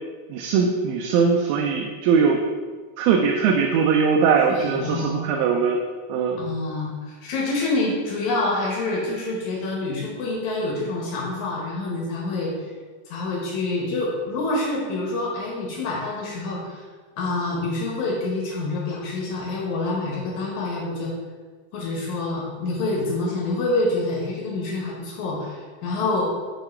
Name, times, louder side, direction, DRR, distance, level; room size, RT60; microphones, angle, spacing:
voice 1, 0.3-2.4 3.0-5.8 6.1-6.4, right 6 dB, 85° right, 1 dB, 2.0 m, -20 dB
voice 2, 4.5-5.4 6.4-12.5 13.1-16.8 17.2-21.1 21.7-26.3, left 2 dB, 75° left, -4 dB, 2.4 m, -27 dB
8.2 x 2.9 x 4.3 m, 1.4 s
omnidirectional pair, 3.4 m